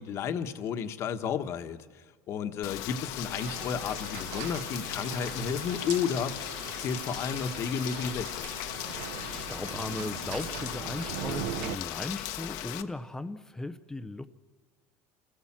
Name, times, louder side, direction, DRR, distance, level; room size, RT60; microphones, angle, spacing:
voice 1, 0.0-1.8 2.3-6.5 6.8-8.5, left 7 dB, 40° left, 8 dB, 1.3 m, -32 dB
Rain, 2.6-12.8, left 14 dB, 65° left, 1.2 m, -38 dB
sound 1, 3.2-11.8, right 13 dB, 80° right, 0.9 m, -41 dB
voice 2, 9.3-14.3, left 2 dB, 5° left, 10 dB, 0.7 m, -37 dB
27.5 x 18.5 x 7.5 m, 1.5 s
cardioid pair, 150°, 7 cm